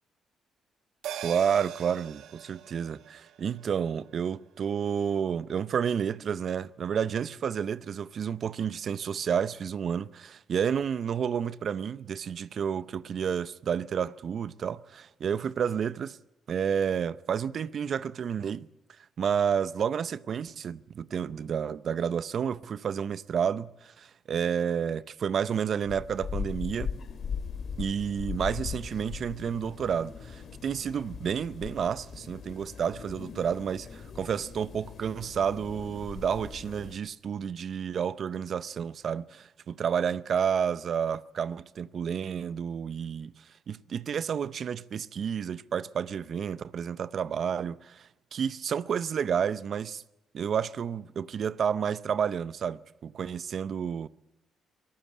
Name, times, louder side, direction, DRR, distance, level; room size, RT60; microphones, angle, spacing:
sound 1, 1.0-5.8 6.1-6.2, right 10 dB, 85° right, 1.2 m, -44 dB
voice 1, 1.2-16.2 16.5-18.7 19.2-26.9 27.8-50.0 50.3-54.1, right 7 dB, 55° right, 0.6 m, -30 dB
sound 2, 25.8-36.9, left 6 dB, 55° left, 2.3 m, -39 dB
23.5 x 14.5 x 8.4 m
cardioid pair, 90°, 0 cm